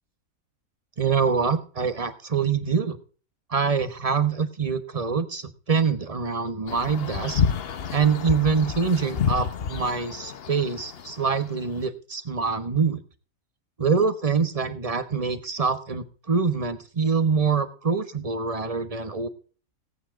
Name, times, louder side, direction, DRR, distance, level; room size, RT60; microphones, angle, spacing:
voice 1, 1.0-3.0 3.5-7.4 7.9-13.0 13.8-19.3, right 5 dB, 25° right, 11 dB, 1.1 m, -25 dB
sound 1, 6.7-11.7, left 7 dB, 50° left, 0.9 m, -29 dB
17.5 x 9.1 x 3.7 m, 0.39 s
omnidirectional pair, 1.5 m